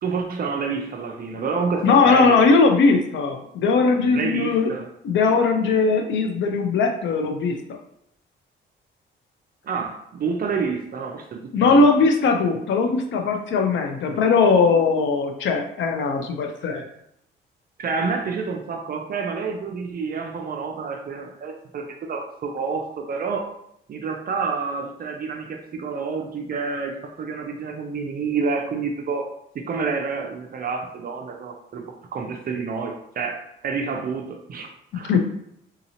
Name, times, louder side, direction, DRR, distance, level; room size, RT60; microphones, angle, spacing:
voice 1, 0.0-2.4 4.1-4.9 9.6-11.8 17.8-23.5 23.9-31.9 32.1-34.7 34.9-35.1, right 5 dB, 50° right, 2 dB, 0.5 m, -28 dB
voice 2, 1.8-4.7 5.0-7.6 11.5-16.8 35.1-35.2, left 4 dB, 70° left, 4 dB, 0.6 m, -19 dB
3.8 x 2.8 x 2.8 m, 0.74 s
cardioid pair, 90°, 20 cm